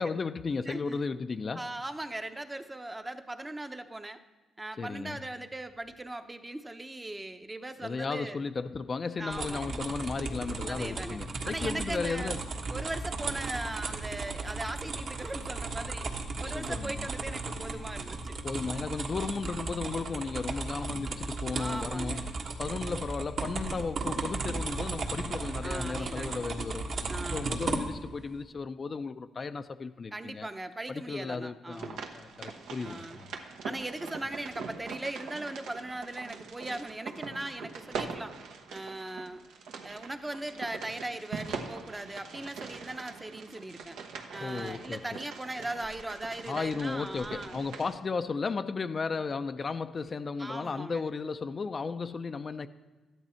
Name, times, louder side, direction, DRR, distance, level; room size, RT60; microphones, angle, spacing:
voice 1, 0.0-1.7 4.8-5.2 7.8-12.4 16.4-17.1 18.4-30.5 30.9-33.1 44.4-45.0 46.5-52.7, left 4 dB, 35° left, 0.4 m, -35 dB
voice 2, 0.7-1.0 1.5-4.2 4.6-8.4 9.2-9.7 10.7-11.2 11.4-12.4 12.7-18.4 21.5-22.2 25.6-26.5 27.1-27.5 30.1-32.0 32.8-33.2 33.6-38.4 38.7-39.4 39.8-44.0 44.3-47.6 50.4-51.0, right 2 dB, 15° right, 0.7 m, -39 dB
sound 1, 9.3-28.1, right 3 dB, 60° right, 1.5 m, -35 dB
sound 2, 31.7-47.9, right 5 dB, 85° right, 1.1 m, -43 dB
13.0 x 11.0 x 4.4 m
cardioid pair, 90°, 0 cm